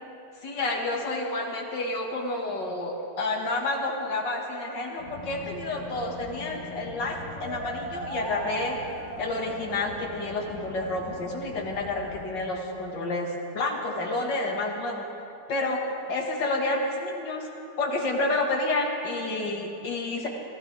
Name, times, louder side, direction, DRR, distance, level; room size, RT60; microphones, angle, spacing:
voice 1, 0.4-8.8 9.2-15.1 15.5-15.8 16.1-17.5 17.8-20.3, left 2 dB, 90° left, 1 dB, 2.4 m, -29 dB
sound 1, 5.0-12.3, left 3 dB, 40° left, 1.8 m, -43 dB
sound 2, 7.4-10.1, right 1 dB, 25° right, 1.3 m, -38 dB
24.0 x 15.5 x 3.4 m, 2.7 s
omnidirectional pair, 1.9 m